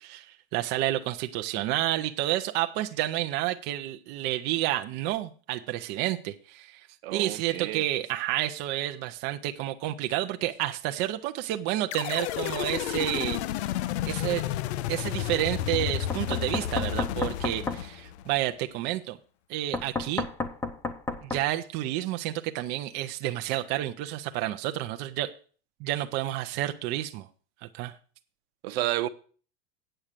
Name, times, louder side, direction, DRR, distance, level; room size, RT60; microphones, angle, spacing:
voice 1, 0.0-13.4 14.1-14.4 14.9-19.2 19.5-20.3 21.2-25.3 25.8-27.3 27.7-28.0, right 14 dB, 35° right, 0.5 m, -30 dB
voice 2, 7.0-7.8 28.6-29.1, right 15 dB, 65° right, 0.9 m, -30 dB
sound 1, 11.9-18.4, left 12 dB, 85° left, 0.7 m, -31 dB
Knock, 16.1-17.8 19.7-21.4, left 3 dB, 10° left, 0.7 m, -31 dB
8.9 x 7.2 x 6.6 m
supercardioid pair, 165°, 32 cm